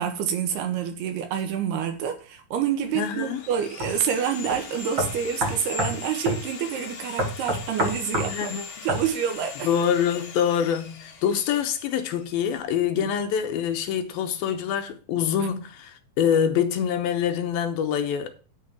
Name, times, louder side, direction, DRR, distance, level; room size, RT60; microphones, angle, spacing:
voice 1, 0.0-8.5 8.8-9.7 13.0-13.1, right 8 dB, 90° right, 3.5 m, -28 dB
Sawing, 2.7-12.6, left 5 dB, 60° left, 3.5 m, -40 dB
voice 2, 3.0-3.4 8.2-8.9 9.6-18.3, left 8 dB, 75° left, 2.7 m, -25 dB
sound 1, 3.8-3.9 4.5-4.6 5.0-6.0 6.3-6.4 7.2-8.3 8.9-9.1, right 1 dB, 35° right, 2.5 m, -26 dB
10.0 x 4.4 x 7.3 m
omnidirectional pair, 4.5 m